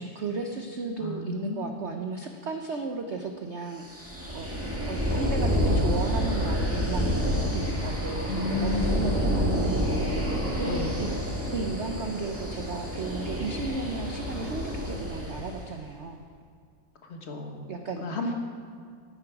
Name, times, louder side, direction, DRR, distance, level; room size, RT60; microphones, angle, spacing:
voice 1, 0.0-3.9 4.3-4.5 4.8-10.3 10.5-11.1 11.5-16.2 17.7-18.3, right 4 dB, 75° right, 4 dB, 0.6 m, -35 dB
voice 2, 1.0-1.9 8.3-10.0 10.6-11.0 17.0-17.7 18.0-18.3, left 2 dB, 40° left, 3 dB, 1.3 m, -32 dB
sound 1, 3.9-15.6, equal, 5° right, 1.5 m, -28 dB
13.5 x 10.0 x 4.8 m, 2.2 s
omnidirectional pair, 2.2 m